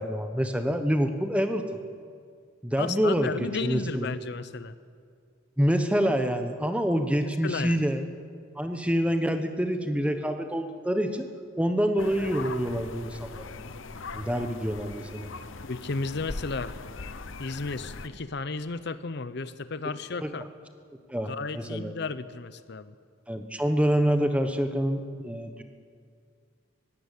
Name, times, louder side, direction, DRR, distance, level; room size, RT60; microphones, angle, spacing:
voice 1, 0.0-1.8 2.6-3.3 3.6-4.1 5.6-8.0 8.6-11.3 11.6-13.5 14.1-15.3 20.2-20.3 21.1-21.9 23.3-25.6, equal, 5° right, 7 dB, 1.1 m, -26 dB
voice 2, 2.8-4.7 7.4-7.8 15.6-16.8 17.4-20.5 21.2-22.9, left 4 dB, 55° left, 14 dB, 0.7 m, -33 dB
sound 1, 12.0-18.1, left 3 dB, 70° left, 1.0 m, -40 dB
20.5 x 17.0 x 8.3 m, 2.2 s
head